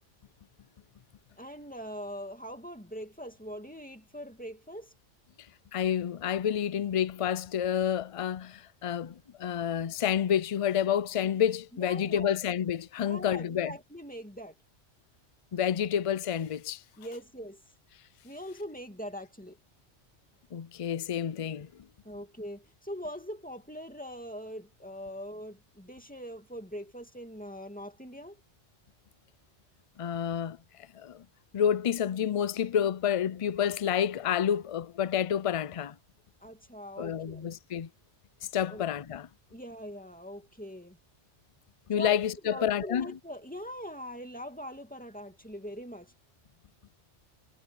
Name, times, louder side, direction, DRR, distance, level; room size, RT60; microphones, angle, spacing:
voice 1, 1.4-4.9 11.7-12.4 13.0-14.5 17.0-17.6 18.2-19.6 22.0-28.4 36.4-37.5 38.7-38.8 39.5-41.0 41.9-42.2 42.4-46.1, equal, 5° left, 2.3 m, -42 dB
voice 2, 5.7-13.7 15.5-16.8 20.5-21.7 30.0-30.6 30.9-31.2 31.5-35.9 37.0-37.9 38.5-39.3 41.9-43.1, left 9 dB, 50° left, 0.4 m, -29 dB
omnidirectional pair, 1.2 m